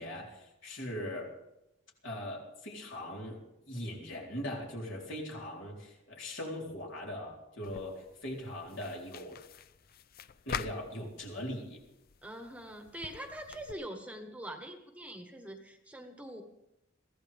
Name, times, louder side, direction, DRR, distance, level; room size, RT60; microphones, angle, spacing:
voice 1, 0.0-1.3 2.0-3.4 3.7-9.4 10.5-11.8, left 1 dB, 70° left, -2 dB, 4.0 m, -40 dB
sound 1, 7.6-13.7, left 7 dB, 50° left, 0.5 m, -46 dB
voice 2, 12.2-16.4, right 1 dB, 5° right, 4 dB, 1.3 m, -44 dB
23.0 x 15.5 x 3.5 m, 0.89 s
head